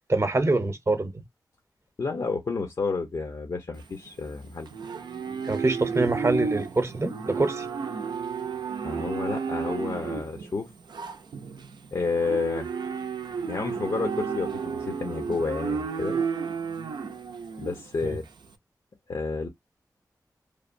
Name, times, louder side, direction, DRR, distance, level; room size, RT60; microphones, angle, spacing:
voice 1, 0.1-1.2 5.4-7.7 18.0-18.2, right 2 dB, 40° right, 0.8 m, -25 dB
voice 2, 2.0-4.7 8.8-10.7 11.9-12.7 13.5-16.2 17.6-18.2 19.1-19.5, left 4 dB, 65° left, 0.8 m, -30 dB
Livestock farm animals working animals, 3.8-18.5, right 5 dB, 90° right, 0.4 m, -32 dB
3.3 x 2.1 x 2.5 m
cardioid pair, 55°, 7 cm